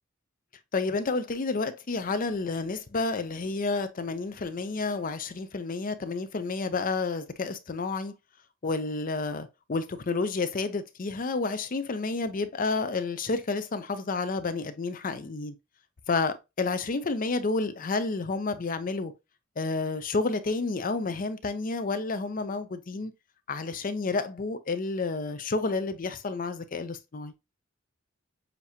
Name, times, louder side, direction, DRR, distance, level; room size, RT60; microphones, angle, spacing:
voice 1, 0.7-8.1 8.6-15.5 16.1-19.1 19.6-23.1 23.5-27.3, left 3 dB, 45° left, 0.6 m, -30 dB
6.8 x 2.8 x 2.8 m
head